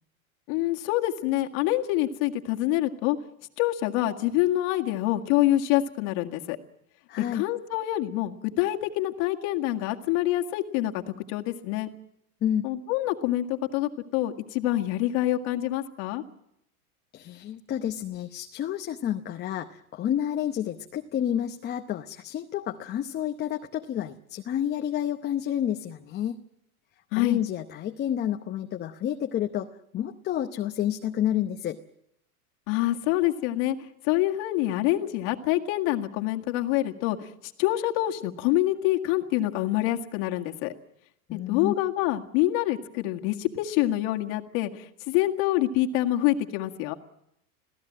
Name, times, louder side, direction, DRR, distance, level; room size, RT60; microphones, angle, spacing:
voice 1, 0.5-3.2 3.6-6.6 7.2-11.9 12.6-16.2 27.1-27.4 32.7-33.8 34.0-37.3 37.6-40.7 41.3-46.9, left 14 dB, 50° left, 4 dB, 1.9 m, -26 dB
voice 2, 7.1-7.5 12.4-12.7 17.1-26.4 27.2-31.8 41.3-41.7, left 10 dB, 25° left, 5 dB, 0.8 m, -30 dB
27.0 x 16.5 x 7.5 m, 0.79 s
supercardioid pair, 135°, 44 cm